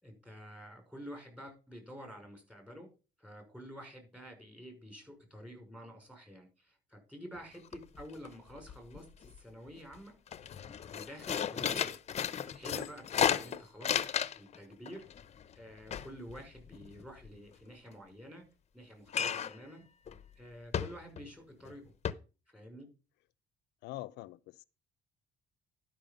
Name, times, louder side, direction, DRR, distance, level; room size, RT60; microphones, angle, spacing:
voice 1, 0.0-2.9 3.2-10.1 10.9-11.9 12.5-14.1 14.4-15.0 15.6-18.4 18.7-19.8 20.4-21.9 22.5-22.9, equal, 5° right, 5.8 m, -49 dB
sound 1, 7.4-7.5 7.7-8.3 8.6-9.4 9.8-9.9 10.3-14.6 14.9-17.3 19.1-19.7 20.1-20.2 20.7-21.3 21.6-21.7 22.0-22.1, left 8 dB, 40° left, 0.8 m, -34 dB
voice 2, 23.8-24.6, left 17 dB, 90° left, 0.5 m, -44 dB
12.0 x 5.8 x 5.3 m
cardioid pair, 110°, 17 cm